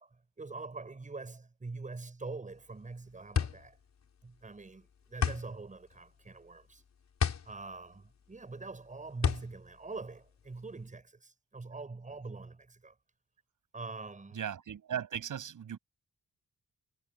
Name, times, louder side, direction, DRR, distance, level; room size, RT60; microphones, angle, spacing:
voice 1, 0.4-3.8 4.2-6.8 7.4-12.9 13.7-14.4, right 3 dB, 25° right, 7.8 m, -44 dB
sound 1, 2.5-10.9, left 7 dB, 60° left, 5.4 m, -34 dB
voice 2, 14.3-15.8, right 9 dB, 80° right, 7.3 m, -37 dB
wide cardioid pair, 150°, 31 cm